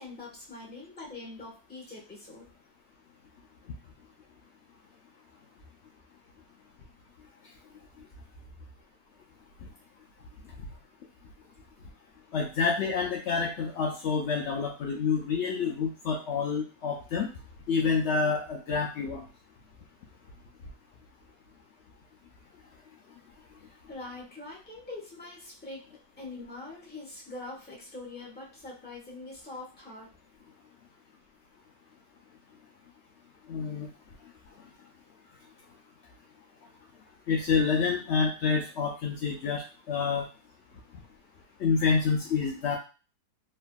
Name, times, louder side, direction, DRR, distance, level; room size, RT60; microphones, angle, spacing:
voice 1, 0.0-2.5 23.6-25.8 26.2-30.1, left 2 dB, 10° left, -4 dB, 0.8 m, -43 dB
voice 2, 12.3-17.3 17.7-19.2 33.5-33.9 37.3-40.2 41.6-42.8, left 5 dB, 90° left, -1 dB, 0.6 m, -28 dB
3.2 x 2.6 x 2.2 m, 0.33 s
omnidirectional pair, 1.8 m